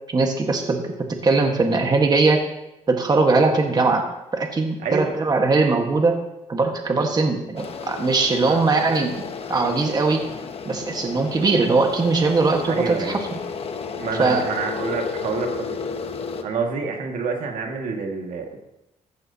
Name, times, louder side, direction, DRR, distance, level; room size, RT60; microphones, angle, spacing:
voice 1, 0.1-0.9 1.2-2.4 2.9-6.2 6.5-10.2 10.6-13.4 14.2-14.5, right 3 dB, 30° right, 3 dB, 1.5 m, -20 dB
voice 2, 4.8-5.1 8.4-8.6 12.7-13.2 14.0-15.8 16.4-18.6, right 5 dB, 80° right, 2 dB, 2.0 m, -27 dB
sound 1, 7.6-16.4, left 5 dB, 50° left, 1.1 m, -32 dB
14.5 x 12.5 x 2.8 m, 0.91 s
cardioid pair, 110°, 13 cm